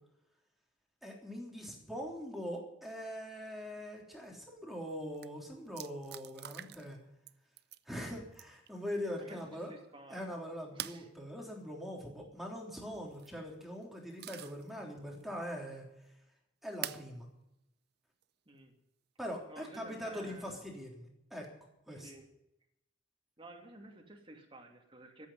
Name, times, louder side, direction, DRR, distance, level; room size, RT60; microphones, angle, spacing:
voice 1, 1.0-7.0 7.9-9.7 10.1-15.9 16.6-17.3 19.2-21.5 21.9-22.1, equal, ahead, -1 dB, 3.5 m, -42 dB
sound 1, 4.8-4.9 5.1-5.3 5.8-7.0 7.3-7.8 8.3-8.7 10.8-11.1 13.0-13.4 13.8-14.7 15.2-15.3 16.8-17.1 18.2-18.3 20.4-20.8, right 12 dB, 55° right, 0.5 m, -44 dB
voice 2, 9.2-10.2 10.7-11.1 18.5-18.7 19.5-20.6 21.9-22.3 23.4-25.3, right 2 dB, 25° right, 2 dB, 2.4 m, -53 dB
14.5 x 8.6 x 9.9 m, 0.84 s
head